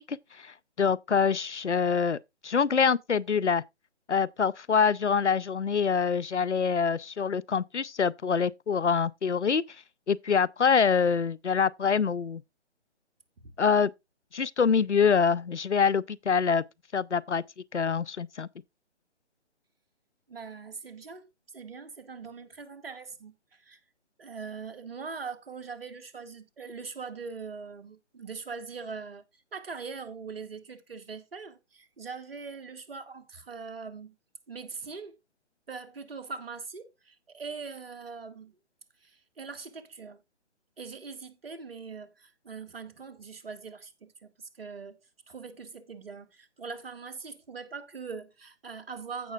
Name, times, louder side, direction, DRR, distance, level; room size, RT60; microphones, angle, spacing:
voice 1, 0.0-2.2 2.4-3.6 4.1-9.6 10.1-12.4 13.6-13.9 14.3-16.6 16.9-17.4 17.7-18.5, left 6 dB, 90° left, 0.6 m, -25 dB
voice 2, 20.3-21.3 21.5-23.8 24.2-29.2 29.5-34.1 34.5-35.2 35.7-38.5 39.0-40.2 40.8-45.0 45.3-49.3, right 5 dB, 55° right, 2.0 m, -42 dB
15.5 x 6.0 x 2.4 m
figure-of-eight pair, 145°, 34 cm